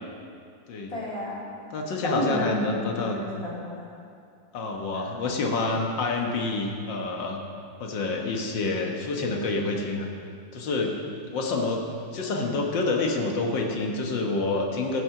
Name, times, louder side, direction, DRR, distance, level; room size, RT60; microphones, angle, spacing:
voice 1, 0.9-1.4 2.0-3.9, left 1 dB, 20° left, -7 dB, 3.0 m, -30 dB
voice 2, 1.7-3.2 4.5-7.4 7.8-10.1 10.5-11.0 11.3-11.8 12.1-15.0, left 3 dB, 85° left, 1 dB, 2.0 m, -27 dB
16.0 x 7.0 x 5.9 m, 2.3 s
omnidirectional pair, 1.9 m